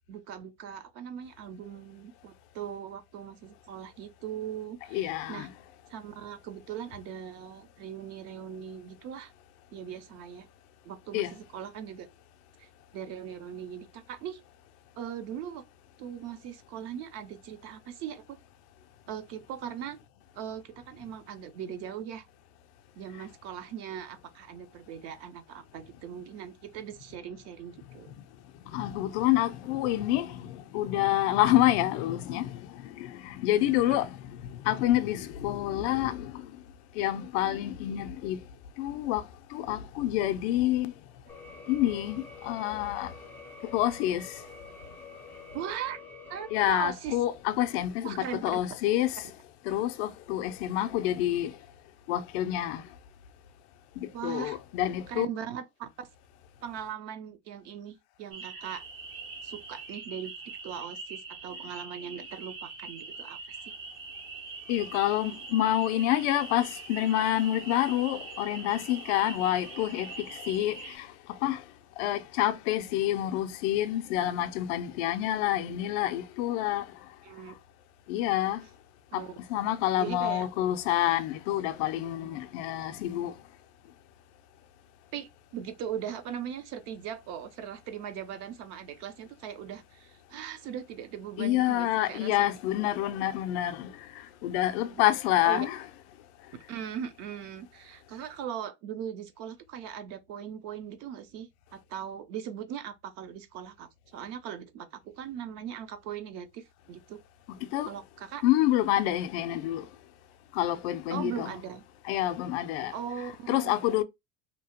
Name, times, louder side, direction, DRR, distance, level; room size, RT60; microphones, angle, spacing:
voice 1, 0.1-5.5 5.9-9.3 9.7-10.5 10.8-12.1 12.6-14.4 15.0-15.6 16.0-18.4 19.1-20.0 20.3-22.3 23.0-28.1 33.7-34.0 45.5-46.0 46.3-47.2 48.0-48.4 49.7-49.8 54.1-54.6 55.1-56.1 56.6-58.8 59.4-60.3 60.6-63.7 77.2-77.5 79.1-79.3 80.0-80.5 85.1-92.5 94.8-95.0 95.4-95.7 96.7-107.2 107.8-108.4 111.1-111.8 112.9-113.8, right 9 dB, 40° right, 0.5 m, -39 dB
voice 2, 4.9-5.5 11.1-11.3 28.7-36.6 36.9-38.4 38.8-40.9 41.7-43.1 43.7-44.4 46.5-49.3 49.7-51.6 52.1-52.9 54.0-55.3 64.7-71.6 72.0-76.9 78.1-78.6 79.1-83.4 91.4-95.8 107.5-107.9 108.4-109.9 110.5-111.5 112.0-112.9 113.5-114.0, left 13 dB, 60° left, 0.5 m, -28 dB
sound 1, 41.3-46.6, left 4 dB, 5° left, 0.5 m, -47 dB
sound 2, 58.3-71.0, right 4 dB, 85° right, 1.4 m, -43 dB
2.8 x 2.1 x 2.8 m
supercardioid pair, 145°, 39 cm